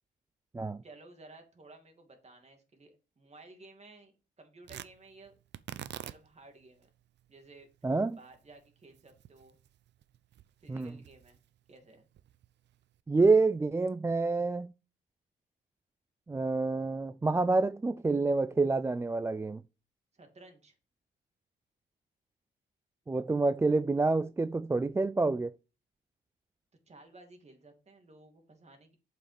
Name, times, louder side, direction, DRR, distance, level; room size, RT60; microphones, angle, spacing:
voice 1, 0.8-5.3 6.0-6.9 7.3-7.7 8.1-9.6 10.6-11.4 11.7-12.1 20.1-20.7 26.9-29.0, right 2 dB, 35° right, 2.5 m, -55 dB
Tearing, 4.6-13.0, right 11 dB, 60° right, 0.6 m, -50 dB
voice 2, 7.8-8.2 10.7-10.9 13.1-14.7 16.3-19.6 23.1-25.5, right 3 dB, 15° right, 0.3 m, -27 dB
7.2 x 5.8 x 5.0 m
cardioid pair, 90°, 20 cm